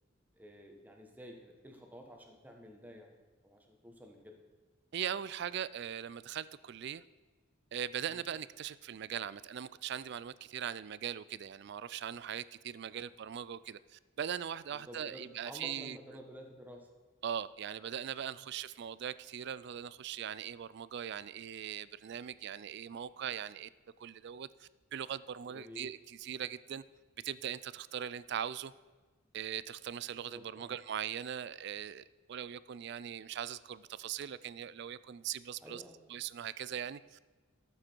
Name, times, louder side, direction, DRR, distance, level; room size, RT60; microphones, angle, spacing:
voice 1, 0.3-3.1 3.4-4.4 8.0-8.2 12.8-13.1 14.7-16.9 18.4-18.5 25.5-25.9 30.3-30.8 35.6-36.1, equal, 10° right, 2 dB, 1.2 m, -51 dB
voice 2, 4.9-7.0 7.7-16.0 17.2-23.7 24.0-26.8 27.2-28.7 29.3-35.8 36.1-37.2, right 9 dB, 55° right, 18 dB, 0.3 m, -40 dB
13.0 x 7.6 x 4.5 m, 1.4 s
head